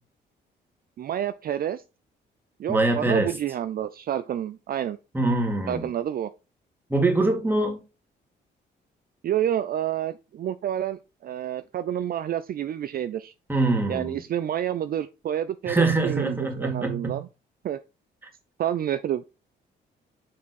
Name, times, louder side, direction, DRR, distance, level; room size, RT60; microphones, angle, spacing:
voice 1, 1.0-1.8 2.6-5.0 5.7-6.3 9.2-13.3 13.9-17.3 17.6-17.8 18.6-19.2, right 10 dB, 50° right, 0.4 m, -29 dB
voice 2, 2.7-3.3 5.1-5.9 6.9-7.8 13.5-14.2 15.7-17.2, right 2 dB, 10° right, 2.0 m, -24 dB
6.6 x 3.5 x 4.0 m
supercardioid pair, 65°, 19 cm